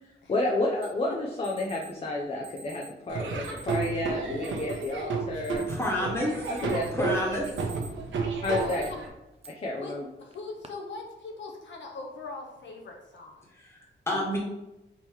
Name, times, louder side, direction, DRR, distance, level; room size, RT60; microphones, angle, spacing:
voice 1, 0.3-5.6 6.6-6.9 8.4-8.9 9.5-10.1, left 2 dB, 30° left, -1 dB, 0.6 m, -30 dB
Alarm, 0.8-0.9 1.4-1.9 2.4-2.9 3.4-3.9 4.4-4.9 5.3-6.1 6.4-6.9 7.3-8.0 8.4-8.9 9.4-9.5 10.3-10.7, right 3 dB, 30° right, 0.4 m, -47 dB
Laughter / Drum, 3.1-9.1, right 4 dB, 80° right, 0.9 m, -32 dB
voice 2, 5.7-6.5 6.9-7.7 13.6-14.4, left 1 dB, 15° left, -4 dB, 1.3 m, -29 dB
voice 3, 8.6-9.0 9.8-9.9 10.2-13.5, left 3 dB, 75° left, 1 dB, 0.8 m, -41 dB
3.6 x 3.0 x 4.5 m, 0.96 s
wide cardioid pair, 130°, 19 cm